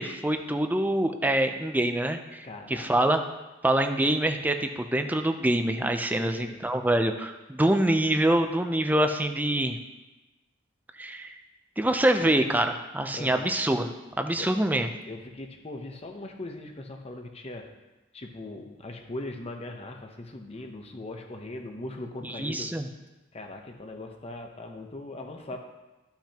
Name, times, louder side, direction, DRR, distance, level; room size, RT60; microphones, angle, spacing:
voice 1, 0.0-3.2 3.6-9.8 11.0-11.3 11.8-13.9 14.2-14.9 22.2-22.9, right 1 dB, 10° right, 6 dB, 0.5 m, -25 dB
voice 2, 2.4-3.0 6.2-6.6 13.1-13.5 14.4-14.5 15.1-17.7 18.1-22.7 23.3-25.6, left 2 dB, 30° left, 3 dB, 0.9 m, -40 dB
14.0 x 5.8 x 2.9 m, 1.1 s
head